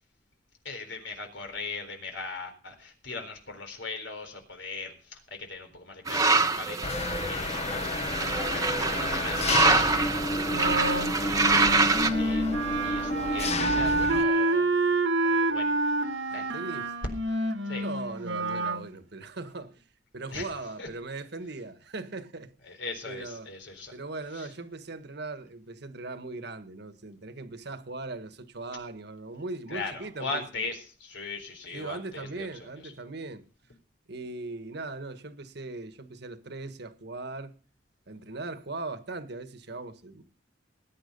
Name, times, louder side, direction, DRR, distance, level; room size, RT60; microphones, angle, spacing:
voice 1, 0.6-14.7 15.2-16.4 17.7-17.8 20.3-20.5 20.8-20.9 22.7-23.9 24.3-24.5 29.7-32.5 32.8-32.9, left 3 dB, 75° left, 4.0 m, -40 dB
sound 1, 6.1-12.1, right 3 dB, 20° right, 1.3 m, -25 dB
Engine, 6.8-14.2, left 2 dB, 35° left, 1.1 m, -31 dB
Wind instrument woodwind instrument, 10.5-18.8, right 2 dB, 75° right, 1.6 m, -28 dB
voice 2, 16.3-16.9 17.8-19.8 20.1-22.5 23.0-23.5 23.9-30.4 31.7-33.4 34.1-37.6 38.1-40.2, right 3 dB, 60° right, 1.5 m, -39 dB
20.0 x 9.7 x 5.4 m
head